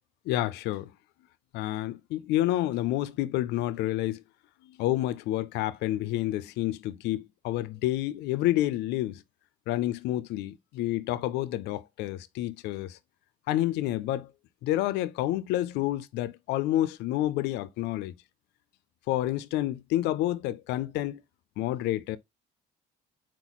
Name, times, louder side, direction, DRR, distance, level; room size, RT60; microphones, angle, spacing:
voice 1, 0.3-0.9 1.5-4.2 4.6-9.2 9.7-13.0 13.5-14.3 14.6-18.1 19.1-21.2 21.6-22.2, left 14 dB, 85° left, 0.5 m, -29 dB
4.4 x 4.1 x 2.9 m
cardioid pair, 110°, 17 cm